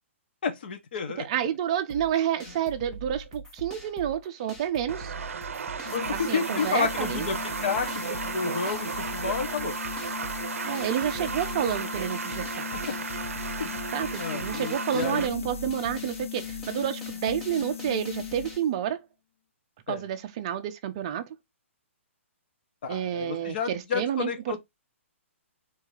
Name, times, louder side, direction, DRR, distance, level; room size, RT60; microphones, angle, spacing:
voice 1, 0.4-1.2 5.9-9.7 13.6-13.9 14.2-15.4 19.9-20.0 22.8-24.6, left 6 dB, 45° left, 1.2 m, -31 dB
voice 2, 1.2-5.1 6.1-7.3 10.6-12.5 13.9-19.0 19.9-21.2 22.9-24.6, right 9 dB, 25° right, 0.6 m, -29 dB
sound 1, 1.9-18.6, right 2 dB, 10° left, 0.7 m, -43 dB
sound 2, 4.9-15.3, right 6 dB, 80° right, 0.6 m, -34 dB
sound 3, 5.8-18.8, left 10 dB, 80° left, 0.5 m, -38 dB
3.8 x 2.8 x 4.7 m
hypercardioid pair, 170°, 7 cm